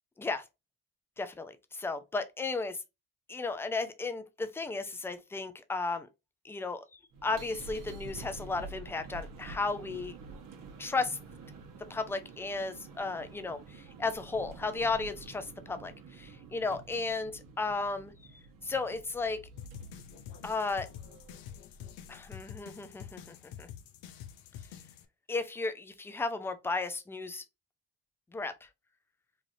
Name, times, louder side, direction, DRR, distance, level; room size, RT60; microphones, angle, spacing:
voice 1, 1.2-2.8 3.3-6.1 6.4-6.8 7.2-10.1 10.8-11.2 11.9-18.1 18.6-19.4 20.4-20.9 22.1-23.7 25.3-27.4 28.3-28.5, left 3 dB, 5° left, 0.4 m, -34 dB
sound 1, 7.1-21.5, right 4 dB, 45° right, 0.9 m, -49 dB
sound 2, 19.6-25.1, left 9 dB, 75° left, 0.6 m, -47 dB
3.3 x 2.4 x 2.6 m
supercardioid pair, 65°, 44 cm